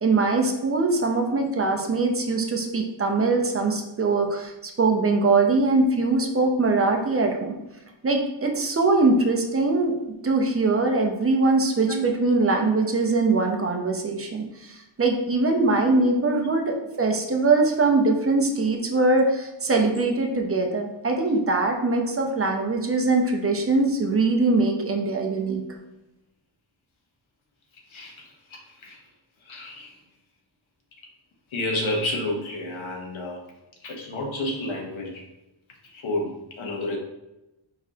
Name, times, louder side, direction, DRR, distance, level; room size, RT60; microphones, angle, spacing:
voice 1, 0.0-7.5 8.0-9.9 10.2-25.6, right 3 dB, 30° right, 2 dB, 0.6 m, -22 dB
voice 2, 11.7-12.0 15.7-16.5 23.5-23.6 24.1-24.2 27.9-29.0 29.4-29.9 31.5-33.5 33.8-35.2 35.8-37.0, left 1 dB, 75° left, 0 dB, 1.1 m, -31 dB
4.6 x 3.7 x 2.8 m, 0.96 s
wide cardioid pair, 125°, 48 cm